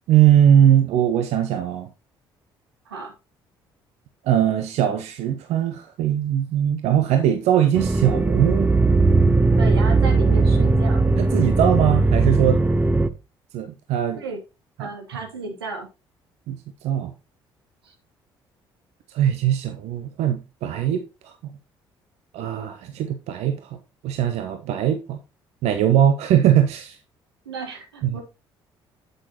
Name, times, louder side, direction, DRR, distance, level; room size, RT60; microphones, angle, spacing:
voice 1, 0.1-1.9 4.2-8.7 11.2-12.6 13.5-14.2 14.8-14.9 16.5-16.6 16.8-17.1 19.1-21.3 22.3-23.8 24.0-25.2 25.6-27.0 28.1-28.2, right 10 dB, 60° right, 0.9 m, -20 dB
sound 1, 7.7-13.1, right 3 dB, 10° right, 0.9 m, -18 dB
voice 2, 9.6-11.1 14.2-14.4 14.8-15.9 17.8-17.9 27.4-28.2, right 4 dB, 80° right, 1.4 m, -33 dB
8.1 x 7.7 x 2.9 m
figure-of-eight pair, 50°, 13 cm